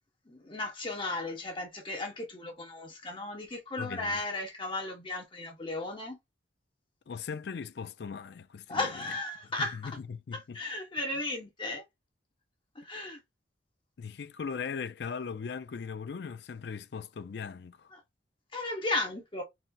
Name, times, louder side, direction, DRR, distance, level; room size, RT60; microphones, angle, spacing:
voice 1, 0.3-6.2 8.7-10.0 10.3-11.8 12.7-13.2 17.9-18.0 18.5-19.4, left 2 dB, 25° left, 1.0 m, -35 dB
voice 2, 3.8-4.2 7.1-8.9 10.1-10.6 14.0-17.9, left 6 dB, 60° left, 0.4 m, -39 dB
4.2 x 2.0 x 3.7 m
head